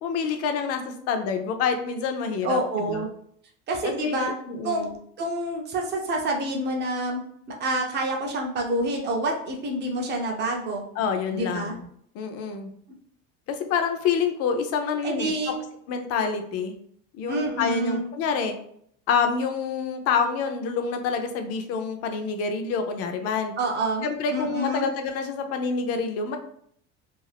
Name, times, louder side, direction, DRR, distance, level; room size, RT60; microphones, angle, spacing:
voice 1, 0.0-2.6 2.9-3.1 3.8-4.9 11.0-11.9 12.1-12.7 13.5-15.3 15.9-16.7 17.1-18.5 19.1-23.5 24.0-26.4, left 5 dB, 40° left, 6 dB, 0.4 m, -27 dB
voice 2, 2.4-3.1 3.7-4.3 4.6-4.9 5.2-7.2 7.6-10.8 11.3-11.7 12.9-13.0 15.0-15.6 17.3-18.1 23.6-24.9, right 1 dB, 30° right, 1 dB, 0.5 m, -27 dB
2.5 x 2.3 x 3.2 m, 0.66 s
cardioid pair, 150°, 39 cm